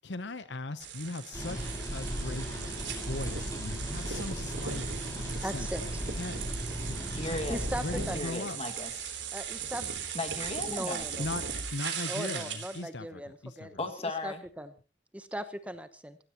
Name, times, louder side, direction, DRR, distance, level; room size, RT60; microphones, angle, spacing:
voice 1, 0.0-2.6 3.1-4.8 5.2-5.9 6.2-6.4 6.9-7.0 7.3-7.4 7.8-8.6 11.2-13.7, left 2 dB, 75° left, 13 dB, 0.9 m, -39 dB
sound 1, 0.8-12.8, right 7 dB, 75° right, 3.5 m, -38 dB
sound 2, 1.3-8.2, equal, 20° left, 6.1 m, -36 dB
voice 2, 5.4-6.0 7.5-8.2 9.3-9.9 10.7-11.2 12.1-13.8 14.0-14.7 15.1-16.2, equal, 10° right, 10 dB, 1.0 m, -38 dB
voice 3, 6.9-7.6 7.9-9.1 10.1-11.1 13.8-14.4, left 2 dB, 35° left, 5 dB, 2.1 m, -36 dB
25.0 x 15.0 x 3.0 m, 0.34 s
head